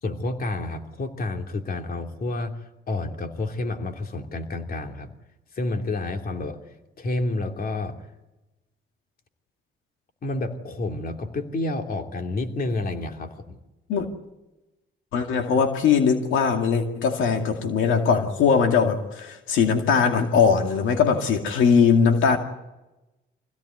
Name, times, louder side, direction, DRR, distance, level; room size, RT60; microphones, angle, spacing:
voice 1, 0.0-2.6 2.9-5.1 5.5-6.6 7.0-7.9 10.2-13.6, left 2 dB, 50° left, 2.9 m, -29 dB
voice 2, 15.1-22.4, left 6 dB, 85° left, 2.3 m, -20 dB
25.0 x 16.5 x 9.5 m
cardioid pair, 90°, 20 cm